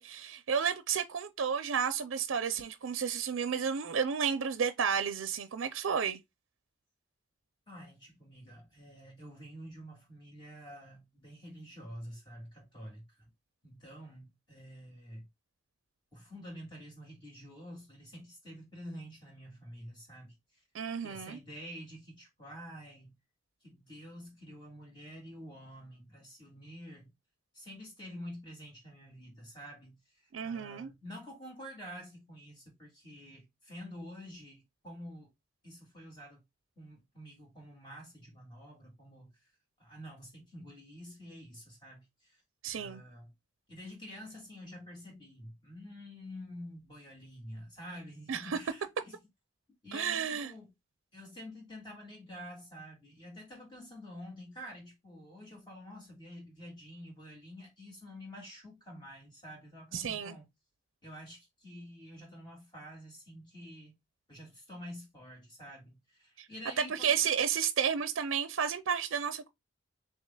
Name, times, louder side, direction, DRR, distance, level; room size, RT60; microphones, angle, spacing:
voice 1, 0.0-6.2 20.7-21.4 30.3-30.9 42.6-43.0 48.3-48.6 49.9-50.5 59.9-60.4 66.4-66.5 66.9-69.5, right 7 dB, 85° right, 0.4 m, -32 dB
voice 2, 7.7-13.3 13.6-15.3 16.1-20.6 21.0-23.1 23.6-27.1 27.5-35.3 35.6-36.4 36.8-39.5 39.8-42.4 42.8-43.3 43.7-49.2 49.8-50.7 51.1-60.5 61.0-64.0 64.3-67.3, equal, 25° left, 2.3 m, -48 dB
6.5 x 2.8 x 2.2 m
head